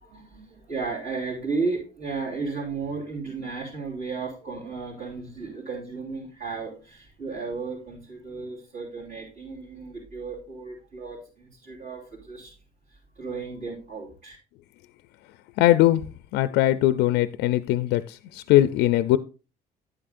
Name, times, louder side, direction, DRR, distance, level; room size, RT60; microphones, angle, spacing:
voice 1, 0.0-12.5 12.9-14.4, right 4 dB, 50° right, 3.3 m, -34 dB
voice 2, 15.6-16.0 16.3-19.2, left 14 dB, 90° left, 0.4 m, -20 dB
10.5 x 8.8 x 2.5 m
cardioid pair, 110°, 17 cm